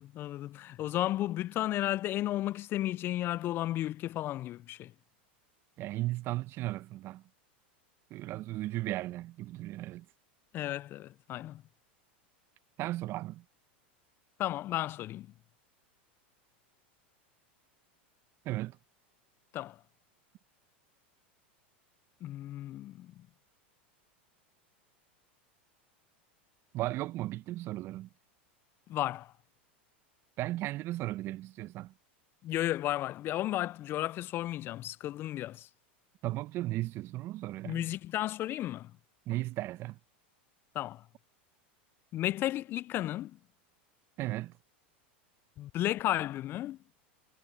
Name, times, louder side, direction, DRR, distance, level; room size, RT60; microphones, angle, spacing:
voice 1, 0.0-4.9 10.5-11.6 14.4-15.3 19.5-19.8 22.2-23.3 28.9-29.3 32.4-35.7 37.6-38.9 40.7-41.0 42.1-43.4 45.6-46.8, left 14 dB, 40° left, 0.4 m, -33 dB
voice 2, 5.8-7.2 8.1-10.1 12.8-13.4 18.4-18.8 26.7-28.1 30.4-31.9 36.2-37.9 39.3-40.0 44.2-44.5, right 16 dB, 45° right, 0.8 m, -35 dB
hypercardioid pair, 100°, 6 cm